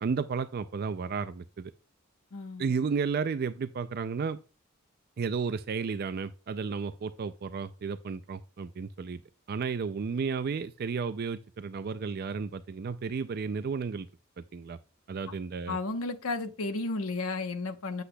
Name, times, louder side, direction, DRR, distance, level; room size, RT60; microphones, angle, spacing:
voice 1, 0.0-1.7 2.6-4.4 5.2-9.2 9.5-14.1 14.4-14.8 15.1-15.8, right 5 dB, 45° right, 0.4 m, -33 dB
voice 2, 2.3-2.6 15.7-18.0, left 3 dB, 75° left, 1.0 m, -33 dB
8.2 x 7.8 x 2.2 m
head